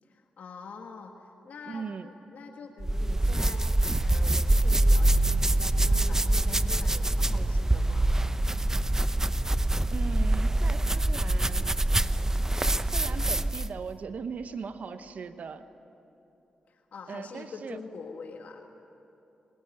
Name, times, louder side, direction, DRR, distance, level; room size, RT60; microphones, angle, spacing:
voice 1, 0.0-8.1 16.7-18.7, left 4 dB, 70° left, 3 dB, 1.6 m, -45 dB
voice 2, 1.6-2.1 7.3-7.5 9.9-11.8 12.9-15.6 17.1-17.8, right 5 dB, 65° right, 10 dB, 1.1 m, -39 dB
sound 1, 2.8-13.8, right 1 dB, 20° right, 0.8 m, -25 dB
28.5 x 18.0 x 9.1 m, 2.9 s
cardioid pair, 55°, 3 cm